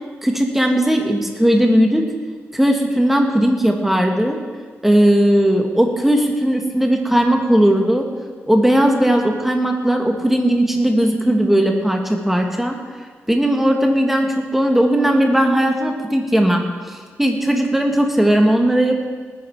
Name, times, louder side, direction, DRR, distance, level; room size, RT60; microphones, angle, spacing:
voice 1, 0.2-2.0 2.5-4.4 4.8-8.0 8.4-12.8 13.3-19.0, right 1 dB, 5° right, 2 dB, 1.8 m, -17 dB
19.0 x 10.5 x 4.8 m, 1.5 s
wide cardioid pair, 115°, 5 cm